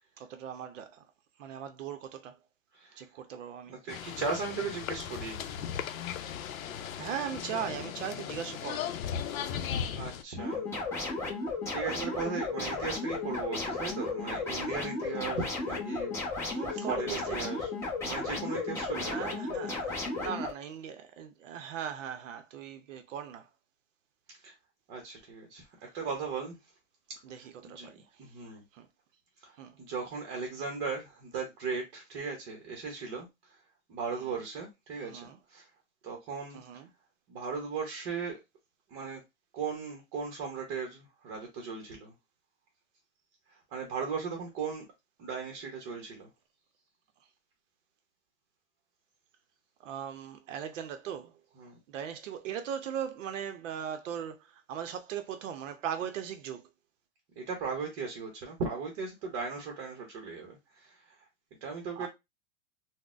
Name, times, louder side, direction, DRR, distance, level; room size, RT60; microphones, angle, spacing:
voice 1, 0.2-1.0 1.4-2.3 3.0-3.7 7.0-8.9 16.5-17.4 19.0-23.5 27.2-28.0 28.7-28.9 29.6-29.7 34.2-34.4 35.0-35.4 36.5-36.9 49.8-51.3 51.9-56.6 62.0-62.1, right 8 dB, 65° right, 0.6 m, -39 dB
voice 2, 2.7-3.0 3.7-5.4 9.9-10.7 11.1-11.2 11.7-17.7 18.0-19.2 24.3-24.5 24.9-26.6 27.1-27.9 28.2-28.6 29.4-33.6 33.9-35.7 36.0-36.6 37.3-38.4 38.9-39.2 39.5-42.1 43.5-44.8 45.2-46.3 51.6-51.8 57.4-61.2 61.6-62.1, right 5 dB, 30° right, 0.7 m, -37 dB
sound 1, 3.9-10.2, left 8 dB, 75° left, 0.6 m, -37 dB
sound 2, 10.4-20.5, left 3 dB, 5° left, 0.8 m, -34 dB
3.8 x 2.1 x 2.4 m
hypercardioid pair, 145°, 41 cm